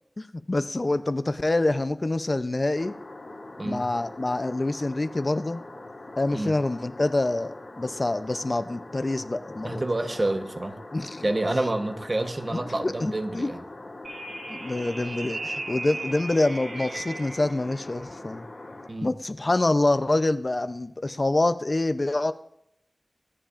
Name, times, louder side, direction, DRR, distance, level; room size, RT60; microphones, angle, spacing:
voice 1, 0.2-2.9 3.6-5.6 6.2-9.8 10.9-11.3 12.8-13.5 14.5-18.4 19.0-22.3, left 2 dB, 45° left, 11 dB, 0.6 m, -26 dB
sound 1, 2.8-18.9, left 2 dB, 75° left, 2.8 m, -42 dB
voice 2, 9.6-10.8 11.2-13.6 18.9-19.1, right 2 dB, 45° right, 6 dB, 1.1 m, -28 dB
sound 2, 14.0-17.5, right 2 dB, 85° right, 1.0 m, -36 dB
24.5 x 10.0 x 2.5 m, 0.77 s
wide cardioid pair, 55°, 0 cm